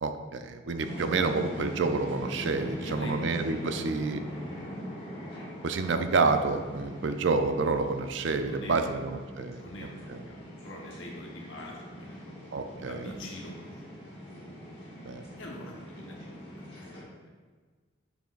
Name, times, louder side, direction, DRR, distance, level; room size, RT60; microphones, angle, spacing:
voice 1, 0.0-4.2 5.6-9.6 10.1-10.2 12.5-13.1 15.1-15.2, right 4 dB, 60° right, 8 dB, 0.4 m, -29 dB
sound 1, 0.8-17.0, equal, 30° left, 1.6 m, -42 dB
voice 2, 2.8-3.3 6.9-7.3 8.5-8.9 9.6-12.3 12.6-13.9 15.4-17.1, left 1 dB, 65° left, -1 dB, 1.1 m, -44 dB
6.9 x 6.1 x 2.5 m, 1.5 s
head